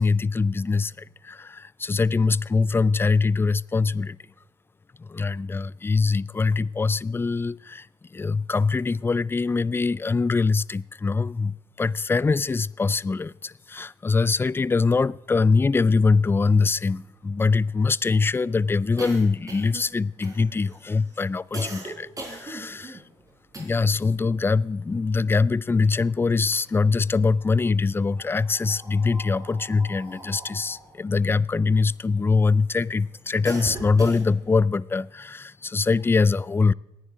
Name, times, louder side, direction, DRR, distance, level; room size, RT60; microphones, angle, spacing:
voice 1, 0.0-4.2 5.0-23.0 23.6-36.7, left 4 dB, 20° left, 0.4 m, -23 dB
sound 1, 16.2-16.3 16.6-24.1 24.4-25.9 26.3-27.2 28.0-32.4 32.9-34.6, right 2 dB, 30° right, 4.2 m, -41 dB
26.5 x 10.0 x 3.7 m
supercardioid pair, 60°, 12 cm